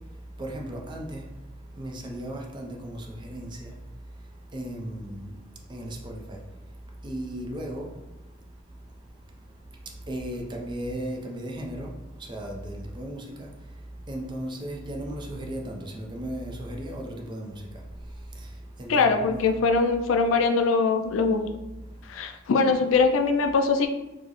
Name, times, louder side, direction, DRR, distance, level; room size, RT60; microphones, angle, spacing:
voice 1, 0.0-19.5 21.7-22.5, right 1 dB, 25° right, 0.4 m, -37 dB
voice 2, 18.9-21.4 22.1-23.9, left 4 dB, 85° left, 0.4 m, -22 dB
4.4 x 2.0 x 2.9 m
head